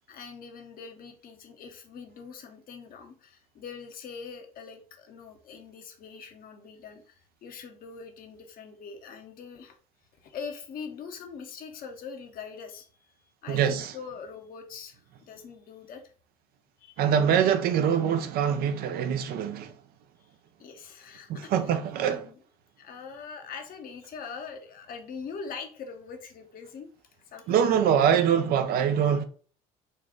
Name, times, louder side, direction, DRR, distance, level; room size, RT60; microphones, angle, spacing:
voice 1, 0.1-9.8 10.2-12.9 13.4-16.0 16.8-17.0 20.6-21.5 22.0-22.4 22.8-26.9 27.3-27.7 28.8-28.9, left 5 dB, 55° left, 0.9 m, -43 dB
voice 2, 13.5-13.9 17.0-19.7 21.3-22.2 27.5-29.3, right 8 dB, 60° right, 0.6 m, -24 dB
4.0 x 2.4 x 3.7 m
hypercardioid pair, 70°, 18 cm